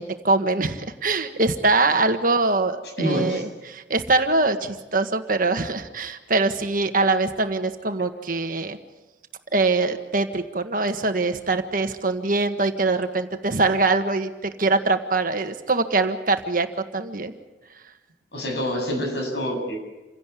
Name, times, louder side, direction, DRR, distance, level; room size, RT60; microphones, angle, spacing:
voice 1, 0.0-8.8 9.5-17.3, right 3 dB, 50° right, 7 dB, 1.5 m, -23 dB
voice 2, 3.0-3.4 18.3-19.8, equal, 70° left, 3 dB, 7.7 m, -26 dB
28.0 x 17.0 x 8.4 m, 1.1 s
head